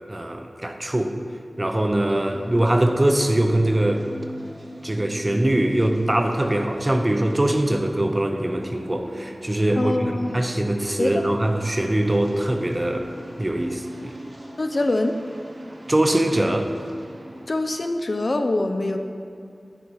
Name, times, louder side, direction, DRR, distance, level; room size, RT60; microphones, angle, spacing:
voice 1, 0.1-1.1 1.6-4.1 4.8-13.1 13.4-14.1 15.9-16.7, right 1 dB, 30° right, 5 dB, 0.6 m, -22 dB
sound 1, 1.5-17.5, equal, 55° right, 1.4 m, -40 dB
voice 2, 9.8-10.4 11.0-11.2 14.6-15.2 17.5-19.0, left 2 dB, 50° left, 6 dB, 0.5 m, -24 dB
10.5 x 4.1 x 4.7 m, 2.3 s
wide cardioid pair, 75°, 0 cm